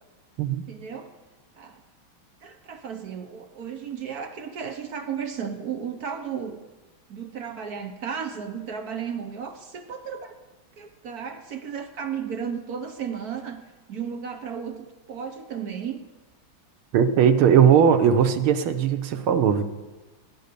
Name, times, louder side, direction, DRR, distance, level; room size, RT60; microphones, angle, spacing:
voice 1, 0.7-1.1 1.6-1.8 2.4-6.6 7.1-10.3 10.8-13.6 13.9-16.0, right 7 dB, 55° right, 7 dB, 1.1 m, -34 dB
voice 2, 16.9-19.6, right 8 dB, 80° right, 9 dB, 1.8 m, -18 dB
17.0 x 10.0 x 6.8 m, 1.2 s
omnidirectional pair, 2.3 m